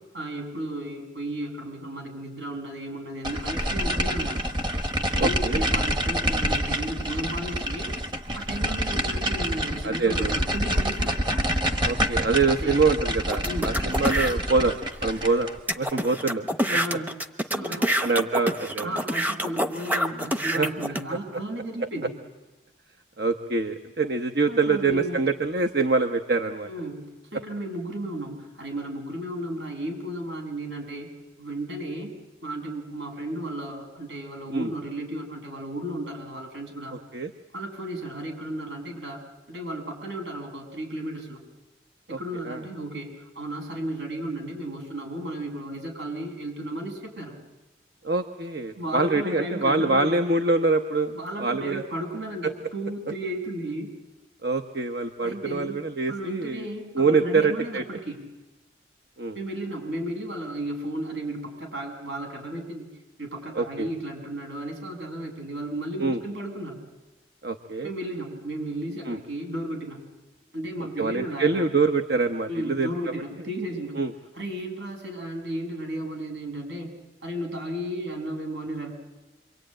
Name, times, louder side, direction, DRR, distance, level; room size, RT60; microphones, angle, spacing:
voice 1, 0.1-4.4 5.1-7.9 8.3-11.2 12.6-12.9 13.4-13.8 16.6-17.2 17.4-18.0 18.8-22.1 24.5-25.2 26.6-31.1 31.4-32.1 32.4-37.0 37.5-39.2 39.5-41.4 42.1-47.4 48.8-50.2 51.1-53.9 55.2-55.8 56.1-58.2 59.3-62.9 63.2-66.8 67.8-70.0 70.5-71.7 72.5-74.0 74.3-76.9 77.2-78.9, right 1 dB, 80° right, 2 dB, 7.8 m, -34 dB
sound 1, 3.2-15.6, equal, 25° right, 1.3 m, -27 dB
voice 2, 5.2-5.6 9.8-10.3 11.8-14.8 15.0-15.5 15.8-16.4 17.7-18.9 20.5-20.7 21.1-21.2 23.2-26.7 34.5-34.7 37.1-37.3 42.1-42.2 42.4-42.6 48.0-51.8 52.4-52.5 54.4-56.7 56.9-57.8 59.2-59.4 63.5-63.9 66.0-66.2 67.4-67.9 69.1-69.2 71.0-72.9 74.0-74.1, right 3 dB, 60° right, 6 dB, 1.1 m, -25 dB
sound 2, 13.3-14.3 14.9-15.0 15.2-15.3 15.7-21.0, equal, 10° right, 0.9 m, -27 dB
28.0 x 23.5 x 9.0 m, 1.2 s
head